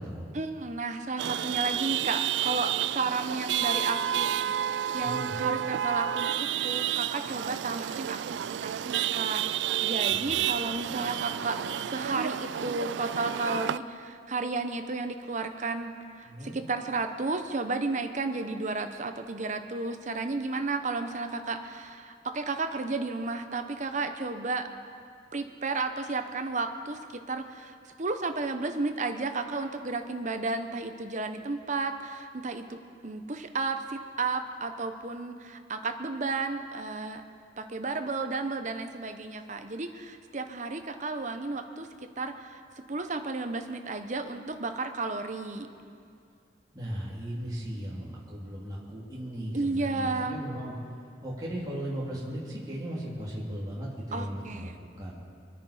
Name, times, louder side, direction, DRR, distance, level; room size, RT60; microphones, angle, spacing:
voice 1, 0.3-24.7 25.3-37.2 37.6-41.9 42.2-45.7 49.5-50.4 54.1-54.7, right 3 dB, 45° right, 7 dB, 0.9 m, -33 dB
Chatter / Vehicle horn car horn honking / Traffic noise roadway noise, 1.2-13.8, right 10 dB, 90° right, 0.3 m, -30 dB
voice 2, 5.0-5.4 10.2-10.4 16.2-16.6 46.7-50.7 51.2-54.7 55.0-55.1, equal, 20° right, -7 dB, 2.8 m, -37 dB
24.0 x 10.0 x 5.0 m, 2.3 s
head